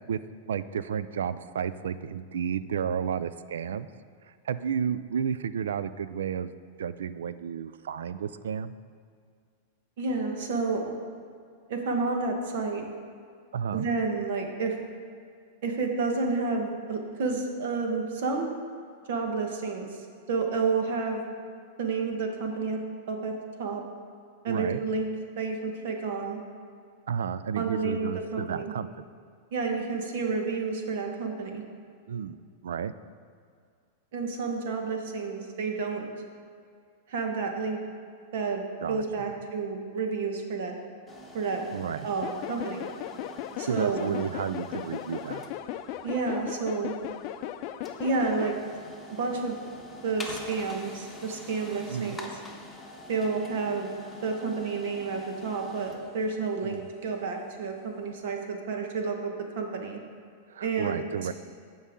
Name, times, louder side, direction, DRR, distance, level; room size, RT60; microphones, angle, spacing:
voice 1, 0.5-3.9 4.4-6.5 6.8-8.7 13.5-13.9 24.5-24.8 27.1-29.0 32.1-32.9 38.8-39.3 41.7-42.1 43.6-45.4 51.9-52.2 56.6-56.9 60.5-61.3, right 8 dB, 85° right, 14 dB, 0.3 m, -32 dB
voice 2, 10.0-10.9 11.7-12.9 13.7-14.8 15.6-18.5 19.1-19.9 20.3-21.2 21.8-22.8 23.1-23.3 23.6-23.8 24.4-25.1 25.4-26.4 27.6-28.7 29.5-31.6 34.1-36.1 37.1-37.8 38.3-40.7 41.3-41.6 42.0-42.9 43.6-44.1 46.0-46.9 48.0-48.5 49.1-49.6 50.0-52.3 53.1-53.9 54.2-60.0 60.6-61.0, right 4 dB, 65° right, 3 dB, 1.4 m, -30 dB
sound 1, 41.1-57.9, left 1 dB, 5° left, 1.2 m, -46 dB
sound 2, 42.2-48.6, left 11 dB, 50° left, 0.4 m, -37 dB
15.0 x 5.5 x 3.7 m, 2.2 s
hypercardioid pair, 130°, 0 cm